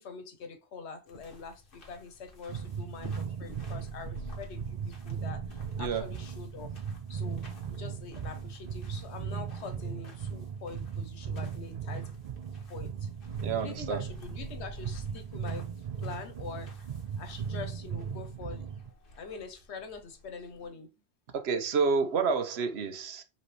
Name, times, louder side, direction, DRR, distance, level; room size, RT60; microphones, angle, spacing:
voice 1, 0.0-6.7 7.1-7.4 7.7-12.3 12.7-13.2 13.5-15.7 16.0-18.7 19.2-20.9, left 5 dB, 90° left, 1.2 m, -44 dB
sound 1, 1.1-20.7, left 1 dB, 55° left, 1.4 m, -51 dB
sound 2, 2.5-18.9, right 7 dB, 55° right, 0.4 m, -38 dB
voice 2, 13.4-14.0 21.3-23.2, right 5 dB, 75° right, 1.0 m, -29 dB
5.1 x 3.1 x 3.1 m
omnidirectional pair, 1.1 m